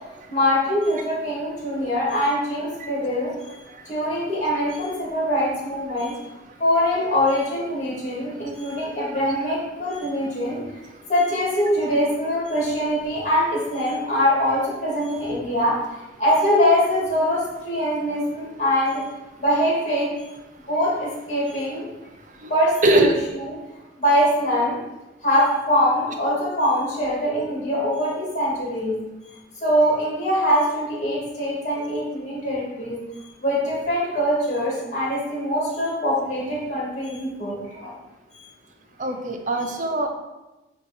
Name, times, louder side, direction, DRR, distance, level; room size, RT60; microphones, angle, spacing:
voice 1, 0.3-3.5 3.9-6.1 6.6-10.6 11.1-15.8 16.2-19.0 19.4-20.1 20.7-21.9 22.5-23.1 24.0-24.8 25.2-29.0 29.6-33.0 33.4-37.9 38.3-38.5, equal, 35° left, -4 dB, 2.2 m, -23 dB
voice 2, 8.3-8.7 10.9-11.0 20.6-20.7 22.1-22.5 22.8-23.1 39.0-40.1, right 2 dB, 40° right, 4 dB, 0.7 m, -23 dB
8.8 x 3.0 x 4.3 m, 1.0 s
head